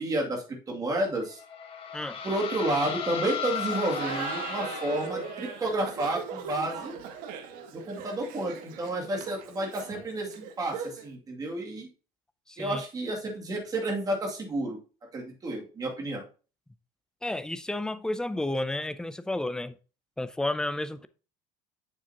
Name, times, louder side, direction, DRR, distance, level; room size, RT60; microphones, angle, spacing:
voice 1, 0.0-1.4 2.2-7.0 7.7-11.9 12.6-14.8 15.1-16.2, right 1 dB, 25° right, 2.5 m, -31 dB
sound 1, 1.3-5.6, left 7 dB, 35° left, 1.5 m, -36 dB
Laughter, 3.6-11.1, right 6 dB, 65° right, 1.5 m, -39 dB
voice 2, 12.5-12.8 17.2-19.7 20.2-21.1, left 1 dB, 5° left, 0.4 m, -31 dB
8.7 x 7.2 x 2.9 m
cardioid pair, 145°, 16 cm